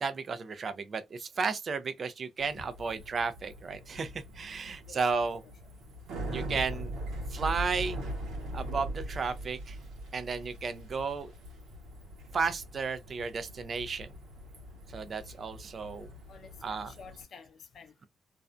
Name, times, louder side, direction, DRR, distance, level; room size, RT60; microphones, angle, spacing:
voice 1, 0.0-5.4 6.3-7.0 7.3-8.0 8.5-9.8 10.1-11.3 12.3-14.1 14.9-16.1 16.6-16.9, right 5 dB, 45° right, 0.4 m, -33 dB
Bicycle, 2.4-17.2, right 1 dB, 85° right, 0.9 m, -41 dB
voice 2, 4.8-5.5 6.3-6.5 16.3-18.1, left 6 dB, 55° left, 0.6 m, -52 dB
2.5 x 2.1 x 2.4 m
cardioid pair, 90°, 0 cm